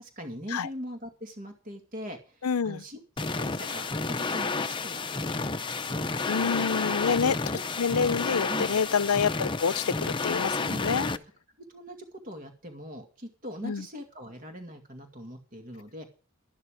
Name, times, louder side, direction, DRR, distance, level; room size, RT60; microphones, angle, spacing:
voice 1, 0.0-6.4 6.7-7.2 7.4-7.6 8.5-8.7 10.7-11.2 11.7-16.1, equal, 40° right, 2.2 m, -42 dB
voice 2, 2.4-2.8 6.3-7.4 7.8-11.1 13.6-13.8, left 6 dB, 85° left, 0.6 m, -27 dB
sound 1, 3.2-11.2, left 3 dB, 20° left, 0.6 m, -31 dB
12.5 x 12.5 x 5.1 m
head